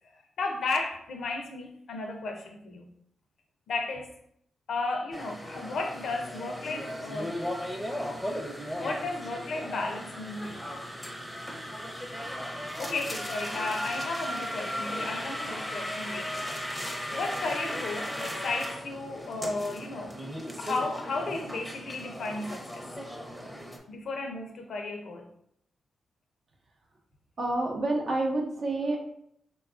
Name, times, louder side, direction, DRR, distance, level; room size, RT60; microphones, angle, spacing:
voice 1, 0.4-2.9 3.7-4.1 4.7-7.4 8.8-10.6 12.8-20.2 20.6-22.9 23.9-25.3, left 3 dB, 70° left, 0.4 m, -34 dB
sound 1, 5.1-23.8, equal, ahead, 0.6 m, -36 dB
voice 2, 27.4-29.0, right 2 dB, 65° right, 0.7 m, -28 dB
3.5 x 2.2 x 2.4 m
supercardioid pair, 55°, 0 cm